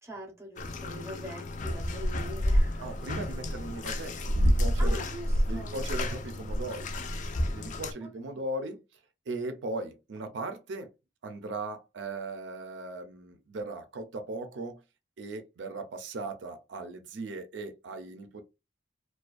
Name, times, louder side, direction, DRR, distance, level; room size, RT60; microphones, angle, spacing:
voice 1, 0.0-2.9 4.8-5.8 8.0-8.1, equal, 15° right, 0.7 m, -43 dB
Bathtub (filling or washing), 0.6-7.9, equal, 45° left, 0.4 m, -29 dB
voice 2, 2.8-5.0 5.5-6.9 7.5-9.0 9.3-10.9 11.2-14.8 15.2-18.4, right 2 dB, 80° right, 0.5 m, -38 dB
2.4 x 2.2 x 2.3 m
head